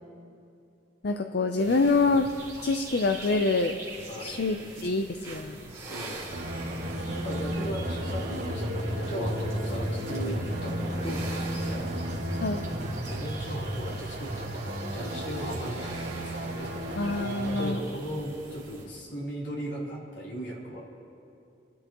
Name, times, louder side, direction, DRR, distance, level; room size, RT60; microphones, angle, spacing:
voice 1, 1.0-2.3 2.6-3.7 4.2-5.6 12.4-12.6 17.0-17.8, left 3 dB, 65° left, 6 dB, 0.6 m, -26 dB
sound 1, 1.6-18.8, equal, 20° right, 3.2 m, -39 dB
voice 2, 4.1-4.4 5.9-6.3 7.1-11.9 13.1-17.0 17.4-20.8, equal, 85° left, -5 dB, 3.5 m, -37 dB
sound 2, 6.3-17.7, right 1 dB, 90° right, 2.1 m, -34 dB
sound 3, 6.9-14.4, right 1 dB, 45° right, 1.6 m, -46 dB
29.5 x 11.5 x 3.0 m, 2.6 s
head